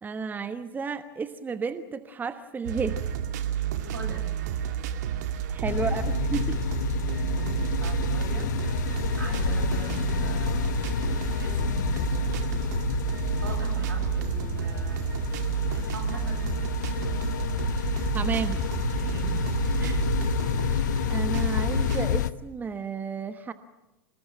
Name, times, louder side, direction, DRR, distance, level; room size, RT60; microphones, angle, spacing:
voice 1, 0.0-3.0 5.5-6.5 18.1-18.6 21.1-23.5, right 5 dB, 15° right, 11 dB, 1.2 m, -32 dB
sound 1, 2.6-22.1, right 10 dB, 55° right, 2.3 m, -30 dB
voice 2, 3.9-4.2 7.1-8.5 9.1-10.8 11.4-12.7 13.4-15.0 15.7-16.5 19.0-19.5 19.8-20.1, right 3 dB, 75° right, 4 dB, 6.9 m, -41 dB
sound 2, 5.6-22.3, left 11 dB, 60° left, 0.9 m, -30 dB
27.0 x 20.5 x 8.9 m, 1.0 s
figure-of-eight pair, 90°, 11 cm